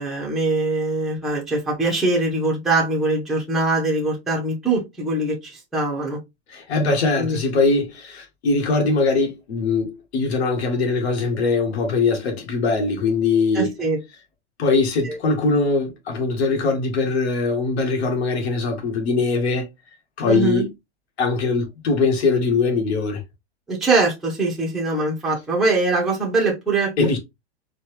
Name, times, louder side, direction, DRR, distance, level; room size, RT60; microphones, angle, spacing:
voice 1, 0.0-6.2 7.2-7.4 13.5-14.0 15.0-15.2 20.2-20.7 23.7-26.9, right 2 dB, ahead, 0.6 m, -22 dB
voice 2, 6.5-13.7 14.6-19.6 20.2-20.7 21.2-23.2 27.0-27.2, left 3 dB, 70° left, 1.6 m, -21 dB
4.2 x 2.3 x 3.2 m
supercardioid pair, 160°, 33 cm